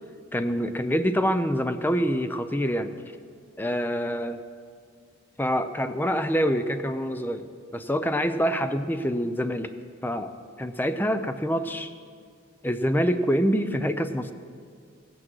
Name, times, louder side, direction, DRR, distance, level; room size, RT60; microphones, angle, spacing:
voice 1, 0.3-2.9 3.6-4.4 5.4-7.5 7.7-9.7 10.0-10.3 10.6-11.9 12.6-14.3, equal, 10° left, 9 dB, 0.5 m, -26 dB
17.0 x 8.8 x 6.2 m, 2.1 s
head